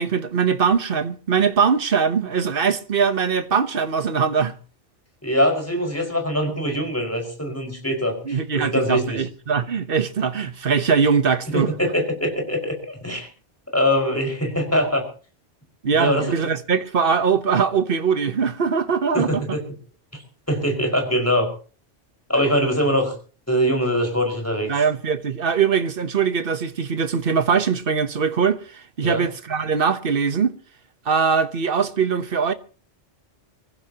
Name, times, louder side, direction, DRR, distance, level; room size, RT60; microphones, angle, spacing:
voice 1, 0.0-4.5 8.2-11.7 15.8-19.4 24.7-30.5 31.0-32.5, right 6 dB, 50° right, 1.3 m, -21 dB
voice 2, 5.2-9.2 11.5-13.3 13.7-15.0 15.9-16.5 19.1-19.6 20.5-21.5 22.3-23.2 23.5-24.7 29.0-29.2, equal, 10° left, 5.4 m, -22 dB
24.5 x 15.5 x 3.0 m
omnidirectional pair, 1.2 m